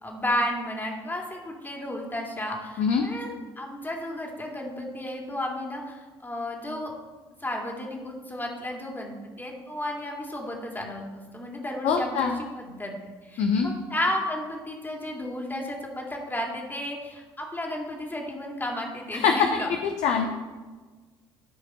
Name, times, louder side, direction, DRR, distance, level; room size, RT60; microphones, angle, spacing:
voice 1, 0.0-6.9 7.4-12.3 12.6-19.7, left 1 dB, 15° left, 0 dB, 2.4 m, -33 dB
voice 2, 11.8-12.4 13.4-13.7 19.1-19.5 19.8-20.3, left 6 dB, 60° left, 4 dB, 0.9 m, -23 dB
14.0 x 5.1 x 4.3 m, 1.3 s
figure-of-eight pair, 50°, 14 cm